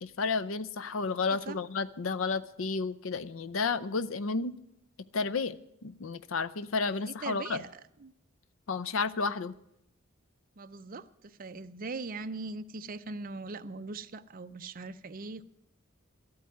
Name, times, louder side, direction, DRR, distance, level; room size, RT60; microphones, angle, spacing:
voice 1, 0.0-4.6 5.1-5.6 5.8-7.6 8.7-9.5, left 4 dB, 75° left, 15 dB, 0.6 m, -31 dB
voice 2, 6.9-7.7 8.0-8.1 10.6-15.4, right 3 dB, 45° right, 11 dB, 0.6 m, -41 dB
13.5 x 8.7 x 9.3 m, 0.81 s
head